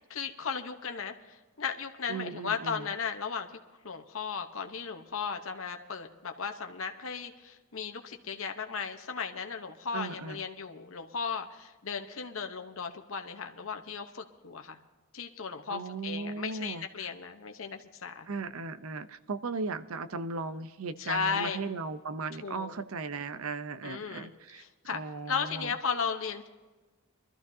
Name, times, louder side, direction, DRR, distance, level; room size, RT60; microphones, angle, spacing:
voice 1, 0.1-3.5 3.8-14.8 15.1-18.3 21.0-21.6 22.4-22.7 23.8-25.0 25.3-26.5, left 6 dB, 70° left, 5 dB, 1.0 m, -36 dB
voice 2, 2.1-2.9 9.9-10.4 15.7-17.1 18.3-24.6 24.9-25.7, right 4 dB, 80° right, 12 dB, 0.7 m, -37 dB
23.5 x 13.5 x 2.8 m, 1.2 s
head